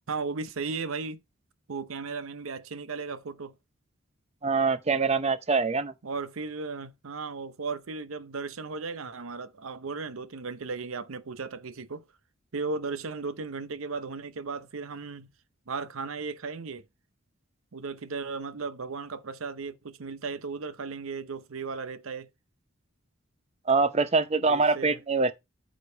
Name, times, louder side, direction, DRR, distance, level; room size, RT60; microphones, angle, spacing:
voice 1, 0.1-1.2 1.7-3.5 6.0-12.0 12.5-15.3 15.7-16.8 17.7-22.3 24.4-25.0, right 4 dB, 80° right, 0.7 m, -36 dB
voice 2, 4.4-5.9 23.7-25.3, right 4 dB, 30° right, 0.6 m, -24 dB
8.9 x 5.1 x 4.5 m
head